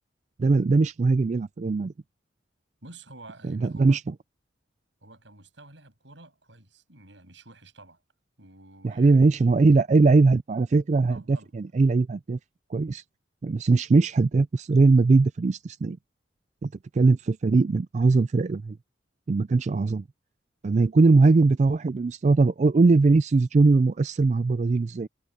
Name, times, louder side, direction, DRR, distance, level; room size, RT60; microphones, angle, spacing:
voice 1, 0.4-1.9 3.5-4.0 8.8-12.4 12.7-13.0 13.4-16.0 16.6-18.8 19.3-20.0 20.6-25.1, right 3 dB, 40° right, 0.3 m, -21 dB
voice 2, 2.8-4.0 5.0-8.0 8.4-9.3 11.0-11.5 19.5-19.6, right 2 dB, 75° right, 7.9 m, -50 dB
head